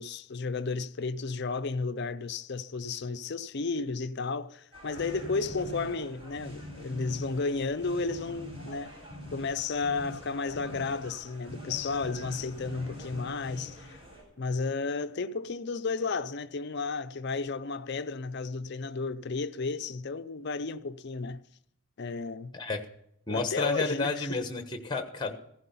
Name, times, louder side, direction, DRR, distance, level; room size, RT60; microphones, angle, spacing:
voice 1, 0.0-8.9 9.3-14.0 14.4-21.4 22.0-22.5 23.3-24.4, left 4 dB, 50° left, 0.5 m, -33 dB
sound 1, 4.7-14.2, left 1 dB, 25° right, 7.8 m, -44 dB
voice 2, 23.3-25.3, left 3 dB, 20° left, 1.2 m, -31 dB
15.5 x 11.0 x 5.6 m
head